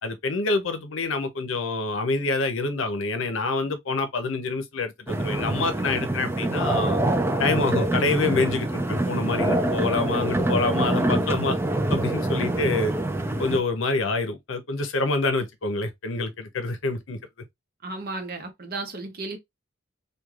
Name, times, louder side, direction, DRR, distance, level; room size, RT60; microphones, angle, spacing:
voice 1, 0.0-7.0 7.4-11.6 11.9-12.9 13.4-17.2, left 3 dB, 70° left, 0.7 m, -27 dB
sound 1, 5.1-13.6, right 1 dB, 10° right, 0.3 m, -25 dB
voice 2, 17.8-19.4, right 3 dB, 50° right, 0.7 m, -34 dB
3.1 x 2.3 x 2.3 m
head